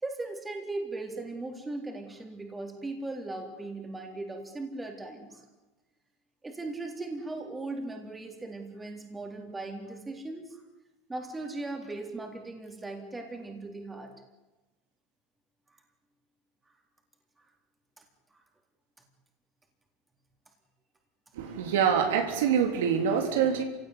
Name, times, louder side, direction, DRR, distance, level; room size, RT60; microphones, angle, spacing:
voice 1, 0.0-5.4 6.4-10.6 11.1-14.1 18.3-18.4 21.4-21.6, right 2 dB, 10° right, 3 dB, 3.7 m, -38 dB
voice 2, 21.4-23.6, right 7 dB, 90° right, 3 dB, 3.6 m, -25 dB
27.5 x 17.0 x 9.8 m, 1.1 s
supercardioid pair, 140°, 0 cm